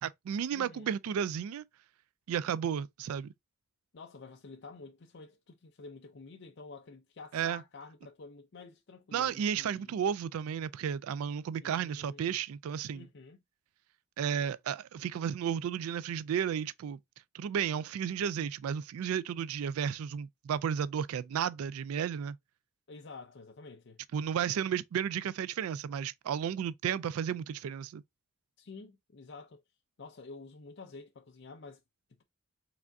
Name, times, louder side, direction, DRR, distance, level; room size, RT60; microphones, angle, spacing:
voice 1, 0.0-1.7 2.3-3.3 7.3-7.6 9.1-13.1 14.2-17.0 17.3-22.4 24.1-28.0, right 8 dB, 85° right, 0.3 m, -33 dB
voice 2, 0.5-0.9 3.9-9.9 11.6-12.4 12.9-13.4 22.9-24.0 28.6-29.6 30.0-31.8, left 4 dB, 55° left, 0.5 m, -50 dB
4.8 x 3.4 x 2.6 m
head